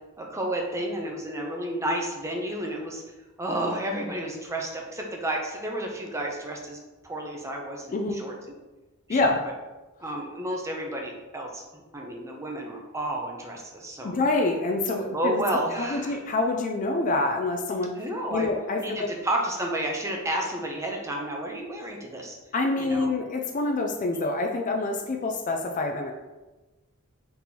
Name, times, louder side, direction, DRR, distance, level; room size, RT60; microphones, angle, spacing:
voice 1, 0.2-3.0 3.4-6.8 7.0-8.3 9.1-9.3 10.0-14.1 15.1-16.2 18.0-18.5 18.8-22.4 22.8-23.1, right 1 dB, 15° right, 0 dB, 0.5 m, -31 dB
voice 2, 14.0-15.4 15.8-18.0 18.3-19.1 22.5-26.1, left 2 dB, 35° left, 3 dB, 0.3 m, -26 dB
4.0 x 2.9 x 3.7 m, 1.1 s
head